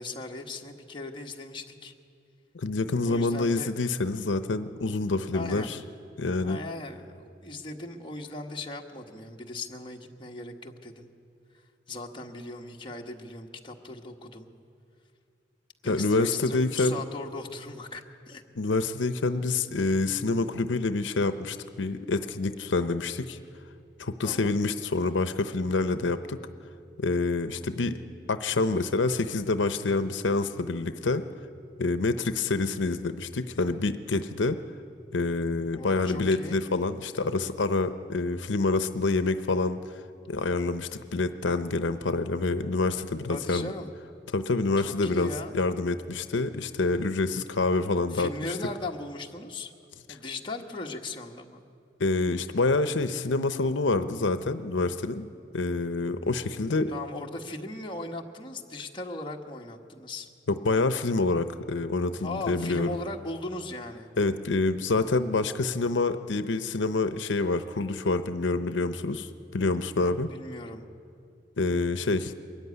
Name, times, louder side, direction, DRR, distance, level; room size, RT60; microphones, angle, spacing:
voice 1, 0.0-1.9 3.0-3.7 5.3-5.7 6.4-11.1 11.5-14.5 15.8-18.4 24.2-24.6 32.2-32.6 35.7-36.6 43.3-43.9 44.8-45.5 48.1-49.7 50.1-51.6 56.9-60.3 62.2-64.1 70.0-70.8, left 2 dB, 25° left, 1 dB, 1.3 m, -38 dB
voice 2, 2.5-5.8 6.2-6.6 15.8-17.0 18.6-23.4 24.0-26.4 27.0-28.0 28.3-31.2 31.8-34.6 35.1-39.8 40.3-43.7 44.3-48.3 52.0-55.3 55.5-56.9 60.6-63.0 64.2-69.3 69.5-70.3 71.6-72.3, left 3 dB, 90° left, 10 dB, 0.7 m, -27 dB
22.5 x 13.5 x 9.6 m, 2.5 s
head